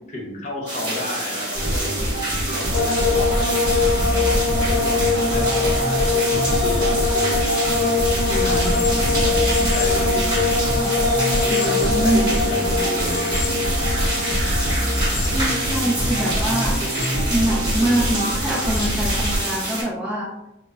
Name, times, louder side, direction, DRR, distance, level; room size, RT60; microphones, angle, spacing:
voice 1, 0.1-2.2 2.5-6.1 6.6-6.9 8.3-10.7 11.4-14.1, left 1 dB, 40° left, -2 dB, 0.6 m, -32 dB
sound 1, 0.7-19.8, right 1 dB, 25° right, 1.0 m, -27 dB
sound 2, 1.5-19.4, equal, 50° right, 0.6 m, -25 dB
sound 3, 2.7-18.0 18.2-18.9, left 4 dB, 80° left, 0.3 m, -24 dB
voice 2, 11.5-12.4 15.3-16.8 17.3-20.3, right 1 dB, 5° right, -4 dB, 0.3 m, -24 dB
2.1 x 2.0 x 3.5 m, 0.89 s
head